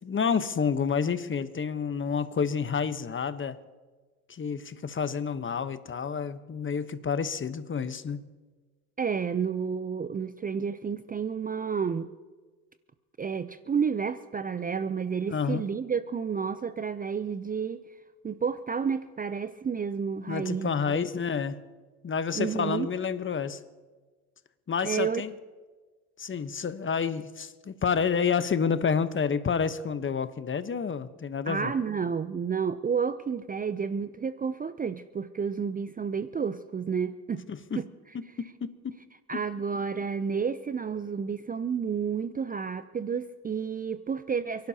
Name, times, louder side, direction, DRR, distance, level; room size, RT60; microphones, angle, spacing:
voice 1, 0.0-3.6 4.3-8.3 15.3-15.6 20.3-21.7 22.0-23.6 24.7-25.3 26.2-31.7 37.5-37.8 38.1-38.9, left 6 dB, 25° left, 12 dB, 1.1 m, -29 dB
voice 2, 9.0-12.1 13.2-17.8 18.2-21.1 22.3-22.9 24.8-25.2 31.5-37.5 37.8-37.9 39.3-44.7, right 6 dB, 20° right, 13 dB, 0.6 m, -30 dB
29.5 x 11.5 x 2.9 m, 1.3 s
hypercardioid pair, 70°, 45 cm